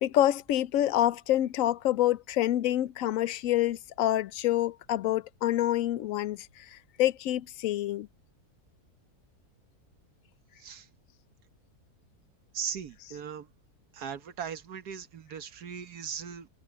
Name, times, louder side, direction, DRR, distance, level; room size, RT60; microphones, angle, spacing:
voice 1, 0.0-8.1, left 13 dB, 70° left, 0.9 m, -27 dB
voice 2, 12.5-13.5 13.9-16.5, right 7 dB, 90° right, 1.7 m, -38 dB
omnidirectional pair, 1.6 m